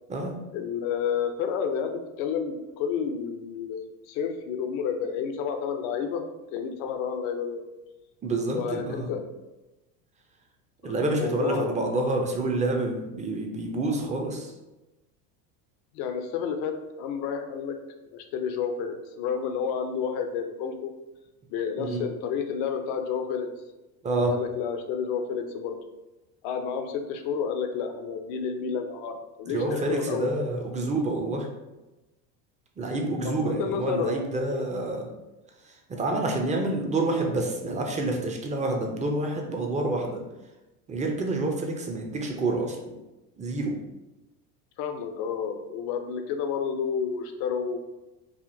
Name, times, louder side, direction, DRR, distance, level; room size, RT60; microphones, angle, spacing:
voice 1, 0.5-6.2 6.5-7.6 8.5-9.2 10.8-11.8 15.9-17.7 18.1-20.9 21.5-23.5 24.2-25.8 26.4-30.3 33.2-34.1 34.5-34.7 44.8-47.8, left 7 dB, 50° left, 5 dB, 0.7 m, -30 dB
voice 2, 8.2-9.1 10.8-14.5 21.8-22.1 24.0-24.3 29.5-31.5 32.8-35.1 35.9-40.2 40.9-42.9 43.4-43.7, right 2 dB, 15° right, 2 dB, 0.6 m, -28 dB
4.9 x 2.4 x 2.7 m, 1.0 s
hypercardioid pair, 85°, 50 cm